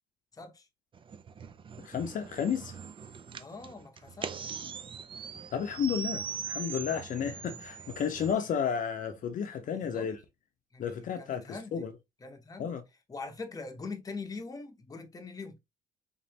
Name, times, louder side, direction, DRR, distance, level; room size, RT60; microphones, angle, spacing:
voice 1, 0.3-0.7 3.4-4.5 7.3-7.5 8.3-8.5 9.6-10.1 10.7-11.9 12.2-12.8 13.1-15.6, left 3 dB, 20° left, 0.9 m, -43 dB
sound 1, 0.9-8.3, right 6 dB, 30° right, 0.5 m, -41 dB
voice 2, 1.8-2.7 5.5-10.2 10.8-11.4 11.7-11.9 12.6-12.8, left 7 dB, 50° left, 0.7 m, -32 dB
3.8 x 3.2 x 2.8 m
cardioid pair, 110°, 17 cm